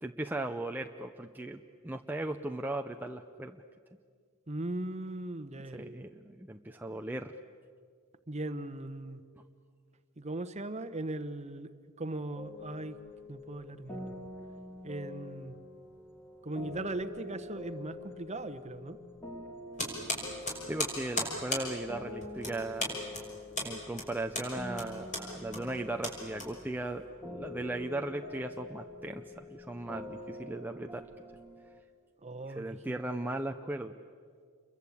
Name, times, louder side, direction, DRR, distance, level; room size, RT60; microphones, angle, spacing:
voice 1, 0.0-3.6 5.7-7.3 20.7-23.0 23.6-31.0 32.5-33.9, right 2 dB, 10° right, 4 dB, 0.6 m, -37 dB
voice 2, 4.5-6.1 8.3-9.2 10.2-11.7 12.0-13.0 13.3-14.1 14.8-15.6 16.4-19.0 32.2-33.0, right 2 dB, 30° right, 10 dB, 1.1 m, -39 dB
sound 1, 12.4-31.8, left 2 dB, 10° left, 2.6 m, -46 dB
sound 2, 19.8-27.0, left 1 dB, 35° left, 5.8 m, -37 dB
28.5 x 22.5 x 8.6 m, 2.1 s
head